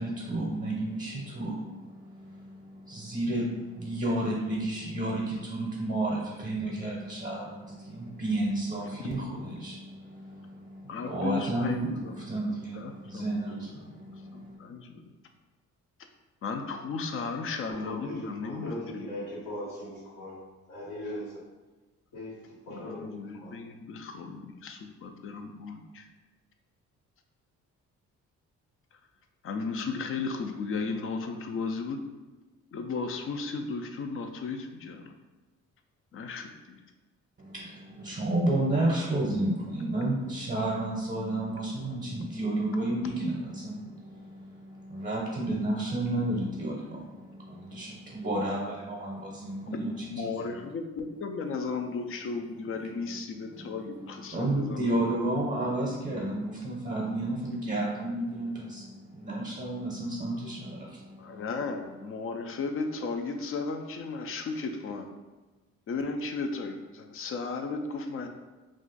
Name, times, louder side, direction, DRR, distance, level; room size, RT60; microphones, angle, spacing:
voice 1, 0.0-3.5 3.7-14.6 37.4-49.9 54.3-61.1, right 1 dB, 25° right, -4 dB, 0.7 m, -31 dB
voice 2, 10.9-12.2 12.5-15.0 16.4-19.1 22.7-26.1 28.9-29.0 29.4-32.0 32.7-35.1 36.1-36.8 49.7-55.0 61.2-65.1 65.9-68.3, left 4 dB, 45° left, 5 dB, 0.4 m, -35 dB
voice 3, 17.7-21.4 22.1-23.5, left 1 dB, 90° left, -7 dB, 1.4 m, -39 dB
2.4 x 2.4 x 3.8 m, 1.2 s
cardioid pair, 90°, 30 cm